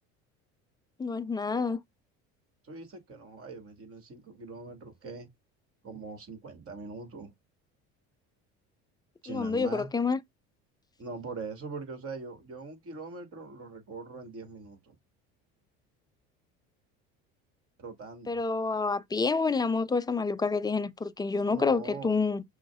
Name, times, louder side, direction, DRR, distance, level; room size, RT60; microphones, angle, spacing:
voice 1, 1.0-1.8 9.3-10.2 18.3-22.4, left 4 dB, 10° left, 0.4 m, -28 dB
voice 2, 2.6-5.3 5.8-7.3 9.2-9.9 11.0-14.9 17.8-18.4 21.5-22.2, right 4 dB, 45° right, 2.1 m, -42 dB
6.0 x 2.3 x 3.5 m
supercardioid pair, 95°, 33 cm